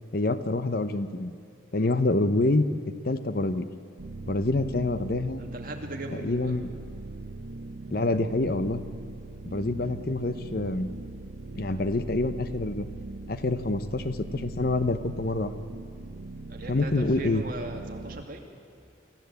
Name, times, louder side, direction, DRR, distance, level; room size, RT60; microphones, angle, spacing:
voice 1, 0.1-1.3 1.7-2.7 3.0-3.7 4.3-5.4 6.2-6.7 7.9-8.8 9.5-10.9 11.5-12.9 13.3-15.5 16.7-17.4, left 2 dB, 50° left, 11 dB, 0.8 m, -26 dB
sound 1, 4.0-18.2, right 3 dB, 65° right, 0.8 m, -40 dB
voice 2, 5.4-6.6 16.5-18.5, right 1 dB, 45° right, 2 dB, 2.3 m, -39 dB
25.5 x 14.0 x 8.2 m, 2.5 s
head